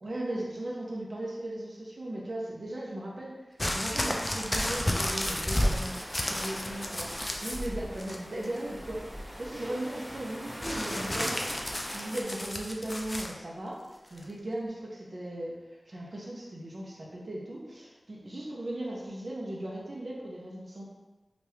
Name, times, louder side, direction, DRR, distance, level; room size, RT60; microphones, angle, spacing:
voice 1, 0.0-11.6 11.9-20.9, right 1 dB, 60° right, -4 dB, 0.8 m, -37 dB
sound 1, 3.6-7.7 8.0-8.6 10.6-13.3 14.2-14.3, left 1 dB, 25° left, 0.4 m, -32 dB
sound 2, 4.1-12.2, equal, 15° right, 1.2 m, -41 dB
2.8 x 2.5 x 3.3 m, 1.1 s
cardioid pair, 40°, 0 cm